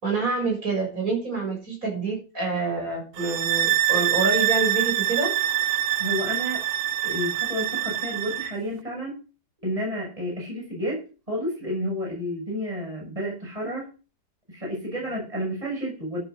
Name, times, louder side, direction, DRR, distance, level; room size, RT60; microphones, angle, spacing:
voice 1, 0.0-5.3, right 3 dB, 50° right, -1 dB, 7.5 m, -27 dB
sound 1, 3.2-8.6, right 12 dB, 85° right, 1.5 m, -25 dB
voice 2, 6.0-6.6 7.0-9.2 9.6-13.9 14.5-16.2, equal, 20° right, -2 dB, 6.7 m, -31 dB
12.5 x 8.9 x 6.4 m, 0.35 s
omnidirectional pair, 1.9 m